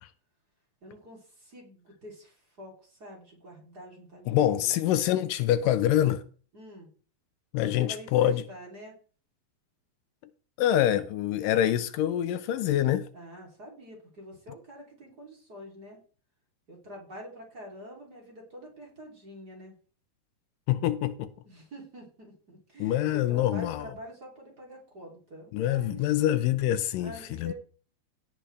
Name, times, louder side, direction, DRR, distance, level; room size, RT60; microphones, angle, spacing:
voice 1, 0.8-4.8 6.5-6.9 7.6-8.9 13.1-16.0 16.7-19.7 21.4-26.1 27.0-27.5, equal, 30° right, 3.5 m, -46 dB
voice 2, 4.3-6.2 7.5-8.4 10.6-13.1 20.7-21.3 22.8-23.9 25.5-27.5, left 12 dB, 80° left, 2.2 m, -25 dB
17.0 x 8.1 x 3.3 m
omnidirectional pair, 3.9 m